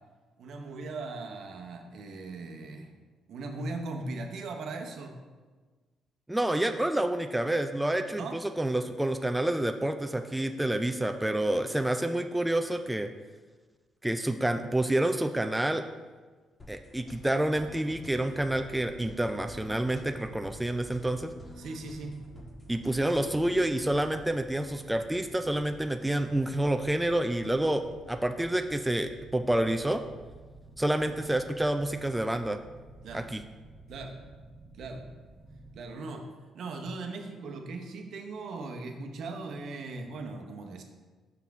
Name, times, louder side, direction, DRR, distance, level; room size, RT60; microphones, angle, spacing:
voice 1, 0.4-2.9 3.3-5.2 8.2-8.4 21.6-22.2 31.1-31.2 33.0-33.3 33.9-34.2 34.7-35.0 35.7-36.3 36.5-40.8, right 3 dB, 70° right, 4 dB, 0.8 m, -39 dB
voice 2, 6.3-13.1 14.0-15.9 16.7-21.3 22.7-30.0 30.8-32.6 33.1-33.4, right 1 dB, 10° right, 7 dB, 0.3 m, -28 dB
sound 1, 16.6-24.3, left 1 dB, 30° left, 1.4 m, -50 dB
sound 2, 17.8-35.8, right 2 dB, 30° right, 1.1 m, -51 dB
5.8 x 5.8 x 3.6 m, 1.4 s
cardioid pair, 90°, 0 cm